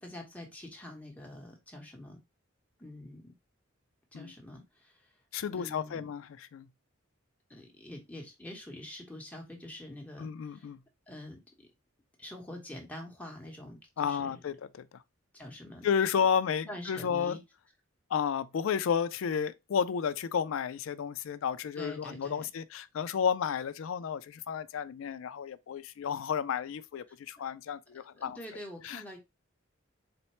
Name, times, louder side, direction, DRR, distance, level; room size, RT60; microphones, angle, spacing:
voice 1, 0.0-2.2 2.8-3.3 4.1-5.1 5.5-6.1 7.5-10.7 11.1-11.7 12.2-14.4 15.3-15.9 16.7-17.4 21.8-22.5 28.1-29.2, left 1 dB, 5° left, 1.0 m, -45 dB
voice 2, 5.3-6.7 10.2-10.8 14.0-15.0 15.8-17.4 18.1-28.4 28.8-29.0, left 7 dB, 70° left, 0.4 m, -32 dB
4.3 x 2.1 x 4.2 m
head